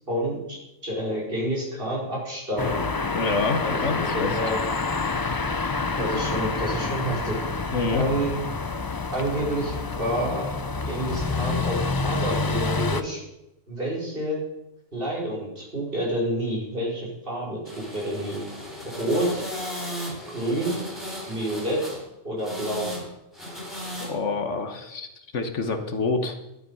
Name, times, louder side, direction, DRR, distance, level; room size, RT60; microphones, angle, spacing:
voice 1, 0.1-2.8 3.6-4.6 6.0-7.4 7.9-8.3 9.1-10.5 10.8-13.2 13.7-14.4 14.9-18.4 19.0-19.4 20.3-20.8 21.3-22.0 22.2-22.9, right 1 dB, 45° right, -4 dB, 5.0 m, -28 dB
sound 1, 2.6-13.0, left 3 dB, 30° left, 0.4 m, -28 dB
voice 2, 3.1-4.3 7.7-8.0 24.0-25.1 25.3-26.4, left 4 dB, 65° left, 7 dB, 1.6 m, -27 dB
sound 2, 17.7-22.0 22.4-23.1 23.3-24.1, equal, ahead, 4.2 m, -36 dB
12.0 x 12.0 x 5.5 m, 0.92 s
omnidirectional pair, 1.3 m